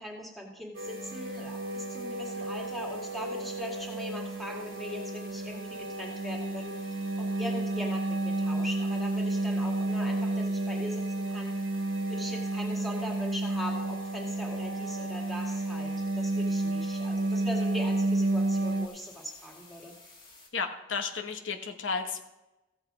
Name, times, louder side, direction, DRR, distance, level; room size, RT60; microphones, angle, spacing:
voice 1, 0.0-6.8 7.2-11.6 12.1-19.9, left 1 dB, ahead, -1 dB, 1.8 m, -41 dB
sound 1, 0.7-20.5, left 3 dB, 25° left, 2.0 m, -54 dB
sound 2, 0.7-18.9, right 2 dB, 70° right, 0.8 m, -31 dB
voice 2, 20.5-22.2, left 5 dB, 80° left, 5 dB, 1.0 m, -33 dB
14.5 x 8.0 x 4.9 m, 0.99 s
head